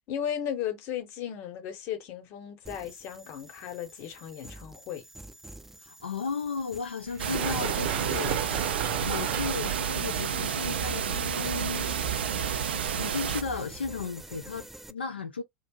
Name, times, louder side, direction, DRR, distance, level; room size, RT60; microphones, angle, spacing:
voice 1, 0.1-5.0, left 9 dB, 50° left, 0.8 m, -35 dB
sound 1, 2.7-14.9, right 1 dB, 5° right, 0.4 m, -48 dB
voice 2, 5.8-11.9 13.0-15.4, left 5 dB, 85° left, 0.3 m, -35 dB
Run, 7.1-14.6, right 9 dB, 55° right, 0.8 m, -36 dB
sound 2, 7.2-13.4, right 8 dB, 75° right, 0.4 m, -30 dB
2.6 x 2.0 x 3.5 m
figure-of-eight pair, 80°, 6 cm